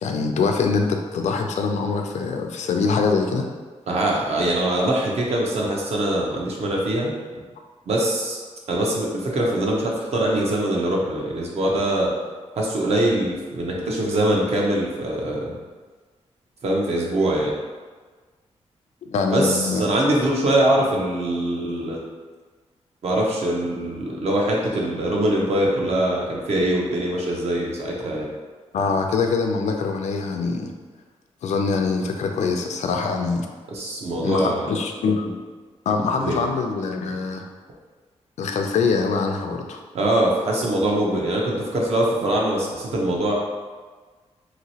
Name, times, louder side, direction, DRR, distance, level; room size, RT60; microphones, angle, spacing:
voice 1, 0.0-3.5 19.0-19.8 28.7-30.7 31.4-33.5 34.2-35.3 35.9-37.4 38.4-39.8, left 4 dB, 80° left, 3 dB, 0.4 m, -23 dB
voice 2, 3.9-7.4 7.9-8.4 8.7-12.1 12.6-15.6 16.6-17.5 19.3-22.0 23.0-28.3 33.7-34.7 36.2-36.4 39.9-43.3, right 1 dB, 65° right, -2 dB, 0.7 m, -23 dB
3.0 x 2.9 x 2.8 m, 1.4 s
wide cardioid pair, 135°, 12 cm